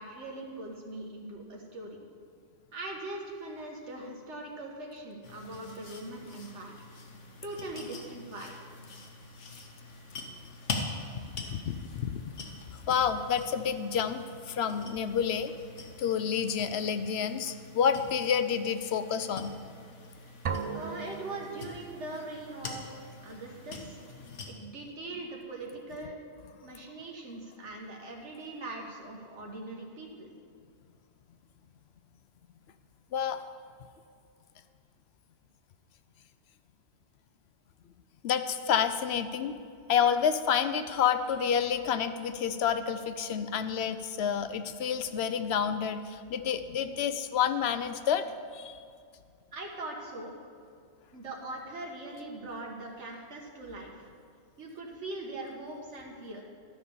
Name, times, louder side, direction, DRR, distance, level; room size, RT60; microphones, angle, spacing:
voice 1, 0.0-2.0 2.7-6.8 7.4-8.7 11.4-11.5 20.7-22.9 23.2-24.0 24.5-26.2 26.6-30.3 49.5-50.3 51.1-54.1 54.6-56.4, right 2 dB, 80° right, 0 dB, 1.5 m, -41 dB
sound 1, 5.2-24.5, left 3 dB, 85° left, 1.5 m, -44 dB
voice 2, 11.2-12.2 12.9-15.5 16.0-19.5 33.1-33.4 38.2-39.5 39.9-48.2 48.5-48.7, left 7 dB, 70° left, 10 dB, 0.8 m, -29 dB
sound 2, 20.5-22.3, right 6 dB, 50° right, 0.4 m, -37 dB
12.0 x 5.7 x 6.9 m, 2.3 s
omnidirectional pair, 1.2 m